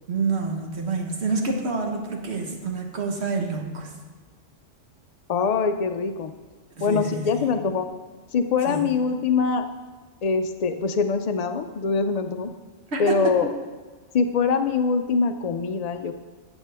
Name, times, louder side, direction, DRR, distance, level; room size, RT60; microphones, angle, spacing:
voice 1, 0.1-3.9 6.8-7.4 8.7-8.9 12.9-13.1, right 4 dB, 60° right, 2 dB, 1.5 m, -28 dB
voice 2, 5.3-6.3 6.8-7.9 8.3-9.7 10.2-12.5 13.0-13.5 14.1-16.1, left 5 dB, 70° left, 7 dB, 0.3 m, -23 dB
14.0 x 8.1 x 3.4 m, 1.4 s
omnidirectional pair, 1.3 m